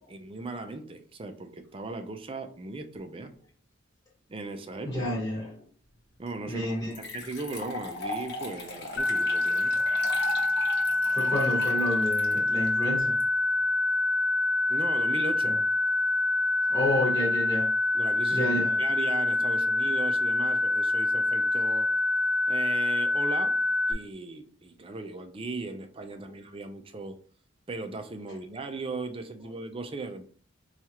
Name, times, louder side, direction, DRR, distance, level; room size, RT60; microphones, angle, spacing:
voice 1, 0.1-3.3 4.3-5.0 6.2-9.8 14.7-15.6 17.9-18.5 18.8-21.9 22.5-23.6 23.9-27.2 27.7-30.2, right 3 dB, 30° right, 0.4 m, -37 dB
voice 2, 4.8-5.5 6.5-7.0 11.1-13.2 15.4-15.5 16.7-17.7 18.3-18.7, left 1 dB, 20° left, 1.0 m, -30 dB
sound 1, 6.3-6.4 6.9-13.2, left 2 dB, 55° left, 0.9 m, -39 dB
sound 2, 9.0-23.9, left 2 dB, 80° left, 0.4 m, -26 dB
4.5 x 2.4 x 2.8 m
head